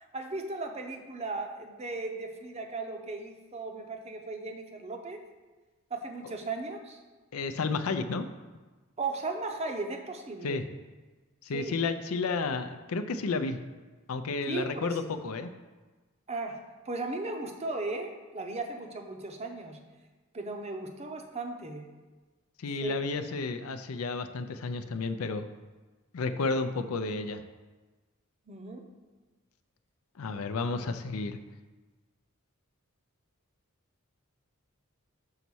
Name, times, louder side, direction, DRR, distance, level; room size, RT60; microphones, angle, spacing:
voice 1, 0.1-5.2 5.9-7.0 9.0-10.7 11.5-11.8 14.5-15.0 16.3-16.6 16.9-19.8 20.3-21.9 22.8-23.0 28.5-28.9, right 3 dB, 30° right, 3 dB, 0.6 m, -36 dB
voice 2, 7.3-8.3 10.4-10.6 11.4-13.6 14.1-15.5 22.6-25.4 26.1-27.4 30.2-31.4, left 4 dB, 85° left, 9 dB, 0.5 m, -31 dB
5.6 x 4.1 x 6.2 m, 1.3 s
head